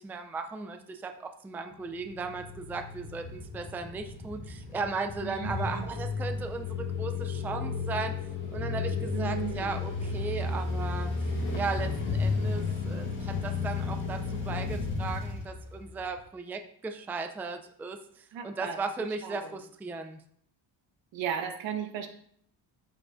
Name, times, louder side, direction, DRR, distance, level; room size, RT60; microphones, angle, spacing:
voice 1, 0.0-8.1 8.5-11.1 11.5-20.2, right 4 dB, 5° right, 6 dB, 0.3 m, -36 dB
sound 1, 1.9-16.2, left 4 dB, 25° left, 2.0 m, -33 dB
voice 2, 5.2-5.9 9.1-9.7 18.3-18.8 19.2-19.6 21.1-22.1, right 8 dB, 80° right, 5 dB, 1.3 m, -35 dB
13.5 x 4.8 x 2.5 m, 0.64 s
cardioid pair, 160°, 44 cm